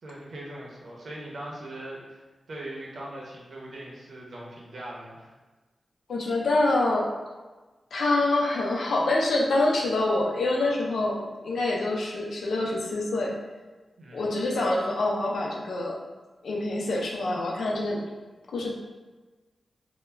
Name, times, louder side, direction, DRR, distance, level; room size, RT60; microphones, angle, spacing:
voice 1, 0.0-2.2 2.5-5.3 14.0-14.4, right 1 dB, 70° right, -4 dB, 0.7 m, -40 dB
voice 2, 6.1-7.1 7.9-13.3 14.1-16.0 16.4-18.0 18.5-18.7, left 2 dB, 85° left, -2 dB, 0.5 m, -26 dB
2.2 x 2.1 x 3.2 m, 1.2 s
cardioid pair, 60°, 0 cm